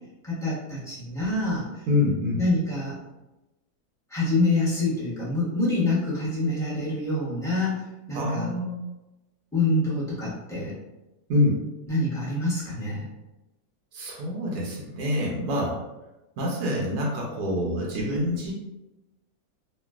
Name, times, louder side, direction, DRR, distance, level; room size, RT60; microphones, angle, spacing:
voice 1, 0.2-1.7 2.4-2.9 4.1-7.8 8.1-8.5 9.5-10.7 11.9-13.0, left 2 dB, ahead, -10 dB, 1.0 m, -26 dB
voice 2, 1.9-2.4 8.1-8.8 11.3-11.6 13.9-15.8 16.4-18.5, left 1 dB, 85° right, -2 dB, 1.2 m, -26 dB
3.1 x 2.5 x 2.3 m, 1.0 s
omnidirectional pair, 1.6 m